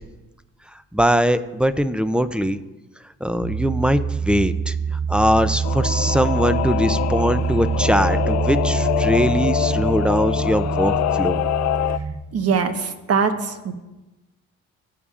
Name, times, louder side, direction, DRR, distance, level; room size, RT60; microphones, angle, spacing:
voice 1, 0.9-2.6 3.2-4.8 5.1-11.4, equal, 5° right, 12 dB, 0.5 m, -21 dB
sound 1, 3.4-12.2, right 5 dB, 25° right, 0.9 m, -25 dB
Singing / Musical instrument, 5.6-12.0, left 13 dB, 60° left, 0.4 m, -24 dB
voice 2, 12.3-13.7, right 5 dB, 55° right, 7 dB, 1.1 m, -22 dB
17.5 x 6.9 x 2.5 m, 1.1 s
cardioid pair, 90°, 30 cm